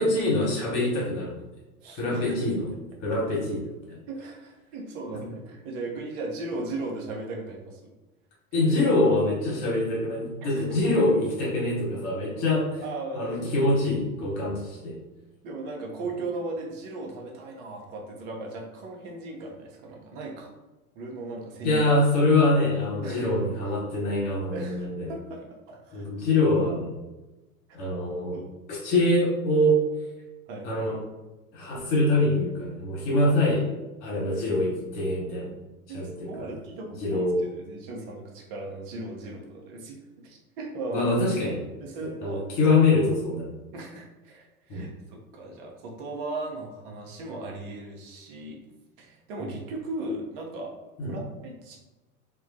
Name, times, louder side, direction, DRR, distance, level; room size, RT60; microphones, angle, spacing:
voice 1, 0.0-1.4 2.0-2.6 3.0-4.0 8.5-12.8 13.1-15.0 21.6-25.1 25.9-26.9 27.7-28.4 28.7-29.9 30.6-31.0 31.5-33.6 34.0-35.5 35.9-36.3 37.0-37.5 40.9-41.7 42.0-43.5 44.7-44.9 51.0-51.1, left 2 dB, 50° left, -4 dB, 1.0 m, -24 dB
voice 2, 1.8-2.4 4.1-7.9 10.4-10.8 12.8-13.5 15.4-20.5 20.9-21.8 23.0-23.3 24.5-26.1 28.3-28.5 30.5-30.8 34.4-34.5 35.9-37.3 37.6-41.1 41.8-42.5 43.7-48.6 49.0-50.7 51.1-51.8, right 2 dB, 45° right, 0 dB, 0.7 m, -37 dB
2.2 x 2.1 x 2.6 m, 1.1 s
hypercardioid pair, 85°, 43 cm